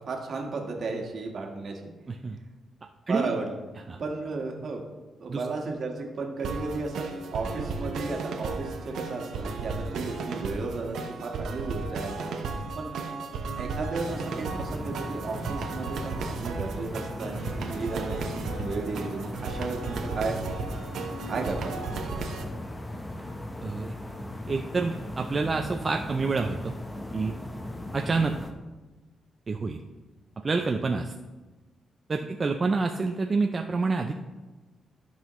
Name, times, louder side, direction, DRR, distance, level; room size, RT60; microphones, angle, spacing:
voice 1, 0.0-1.8 3.1-3.5 4.0-4.8 5.2-12.9 13.5-20.4 21.3-21.9 29.5-29.6, right 3 dB, 55° right, 1 dB, 1.5 m, -34 dB
sound 1, 6.4-22.4, right 4 dB, 80° right, 1.0 m, -35 dB
sound 2, 14.0-28.5, left 1 dB, 20° left, 0.9 m, -38 dB
voice 2, 23.6-23.9 24.5-26.7 27.1-27.3 27.9-28.3 29.5-29.8 30.4-31.1 32.1-34.1, right 4 dB, 35° right, 4 dB, 0.5 m, -27 dB
13.5 x 5.5 x 3.1 m, 1.2 s
cardioid pair, 100°, 0 cm